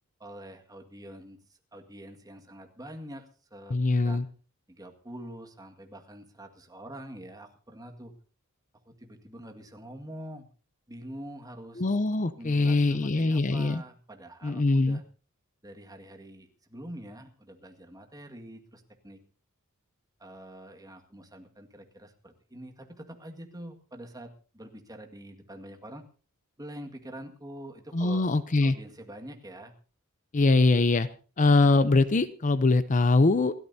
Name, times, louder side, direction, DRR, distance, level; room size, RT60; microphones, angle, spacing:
voice 1, 0.2-3.8 4.0-4.2 4.7-8.1 8.9-10.5 10.9-11.8 12.4-15.0 15.6-19.2 20.2-26.1 26.6-28.3 28.6-29.7, right 1 dB, 15° right, 4 dB, 1.9 m, -45 dB
voice 2, 3.7-4.2 11.8-13.8 14.4-15.0 27.9-28.8 30.3-31.1 31.4-33.5, left 3 dB, 35° left, 13 dB, 0.6 m, -23 dB
28.0 x 13.0 x 2.8 m, 0.37 s
head